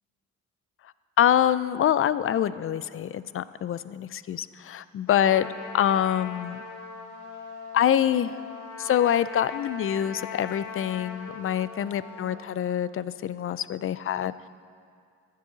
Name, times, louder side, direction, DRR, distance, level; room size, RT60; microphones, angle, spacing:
voice 1, 1.2-5.5 5.7-6.6 7.7-8.4 8.8-14.5, left 10 dB, 45° left, 16 dB, 0.5 m, -25 dB
Trumpet, 5.1-12.4, left 5 dB, 80° left, 1.6 m, -40 dB
12.5 x 7.5 x 8.6 m, 2.3 s
cardioid pair, 90°, 30 cm